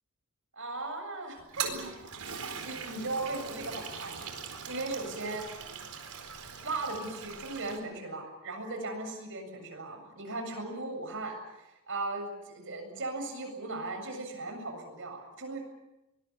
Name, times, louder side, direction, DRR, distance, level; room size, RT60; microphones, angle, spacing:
voice 1, 0.5-1.7 2.6-5.5 6.6-11.4 11.9-15.6, right 2 dB, 60° right, 4 dB, 7.5 m, -37 dB
Toilet flush, 1.4-7.8, right 6 dB, 80° right, 4.4 m, -41 dB
23.5 x 21.0 x 8.5 m, 0.94 s
head